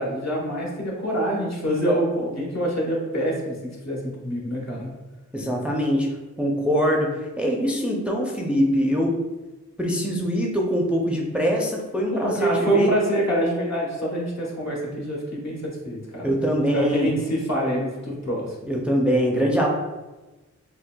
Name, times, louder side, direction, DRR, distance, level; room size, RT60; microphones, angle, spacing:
voice 1, 0.0-4.9 12.1-16.3 16.7-18.7, equal, 65° left, -3 dB, 1.1 m, -26 dB
voice 2, 5.3-6.1 6.4-9.2 9.8-12.9 16.2-17.1 18.7-19.7, equal, 5° right, 0 dB, 0.4 m, -23 dB
6.5 x 2.2 x 2.2 m, 1.2 s
wide cardioid pair, 95°, 30 cm